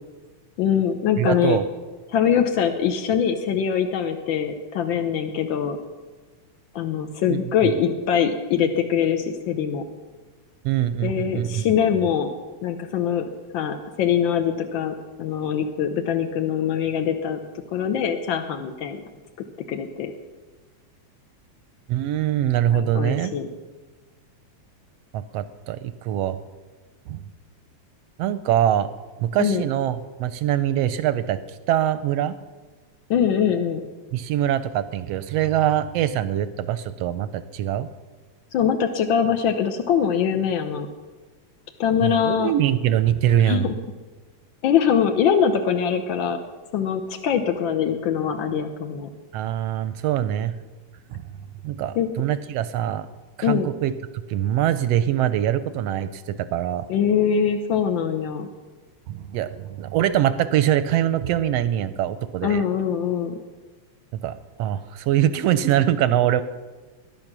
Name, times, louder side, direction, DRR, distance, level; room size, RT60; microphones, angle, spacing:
voice 1, 0.6-1.6 2.1-5.8 6.7-9.8 11.0-12.3 12.6-17.4 17.7-19.0 19.7-20.1 22.7-23.5 29.4-29.6 33.1-33.8 38.5-40.9 41.8-42.5 43.4-43.7 44.6-46.4 46.7-49.1 51.9-52.1 53.4-53.7 56.9-58.5 62.4-63.4, left 8 dB, 70° left, 6 dB, 1.1 m, -23 dB
voice 2, 1.2-1.6 7.3-7.7 10.6-11.7 21.9-23.3 25.1-26.4 27.1-27.2 28.2-28.9 29.2-31.4 31.7-32.3 34.1-37.9 42.0-43.7 49.3-50.6 51.1-51.2 51.6-53.1 53.4-56.9 59.1-62.6 64.2-66.4, right 11 dB, 75° right, 13 dB, 1.5 m, -23 dB
20.0 x 11.0 x 6.0 m, 1.4 s
omnidirectional pair, 3.3 m